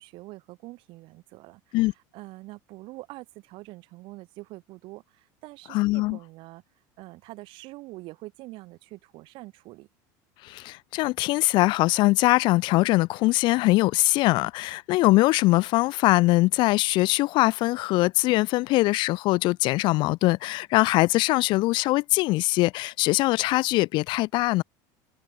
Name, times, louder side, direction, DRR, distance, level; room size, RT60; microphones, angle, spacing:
voice 1, 0.0-6.6 7.0-9.9, right 21 dB, 55° right, 3.5 m, -45 dB
voice 2, 5.7-6.2 10.4-24.6, left 20 dB, 50° left, 0.4 m, -22 dB
supercardioid pair, 140°, 10 cm